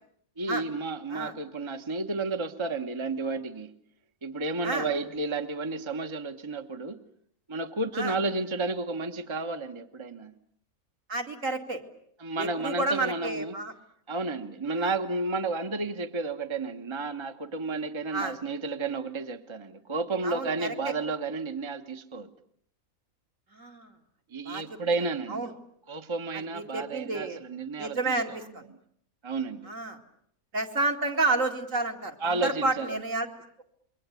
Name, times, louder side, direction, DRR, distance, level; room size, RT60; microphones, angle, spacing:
voice 1, 0.4-3.7 4.2-7.0 7.5-10.3 12.2-13.6 14.1-22.3 24.3-25.5 25.9-28.4 29.2-29.7 32.2-33.0, right 3 dB, 20° right, 6 dB, 1.1 m, -32 dB
voice 2, 11.1-11.8 12.4-13.7 14.8-14.9 18.1-18.4 20.2-20.7 23.5-23.9 24.4-24.6 25.3-25.5 26.3-27.4 27.8-28.6 29.7-30.0 30.5-33.3, right 2 dB, 60° right, 3 dB, 2.9 m, -30 dB
28.0 x 22.5 x 8.3 m, 0.66 s
omnidirectional pair, 1.5 m